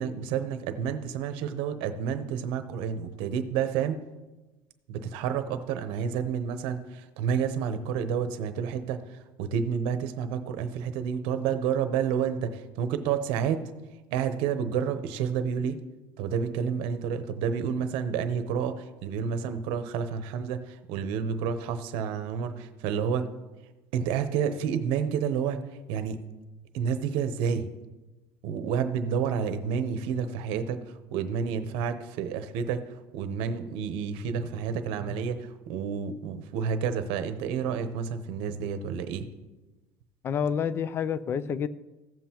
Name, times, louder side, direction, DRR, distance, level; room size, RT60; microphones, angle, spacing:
voice 1, 0.0-4.0 4.9-13.6 14.1-15.8 16.2-23.3 23.9-25.6 25.9-26.2 26.7-27.7 28.4-39.3, right 7 dB, 75° right, 10 dB, 0.8 m, -30 dB
voice 2, 40.2-41.7, left 7 dB, 25° left, 17 dB, 0.3 m, -28 dB
15.0 x 7.5 x 2.9 m, 1.1 s
cardioid pair, 160°, 9 cm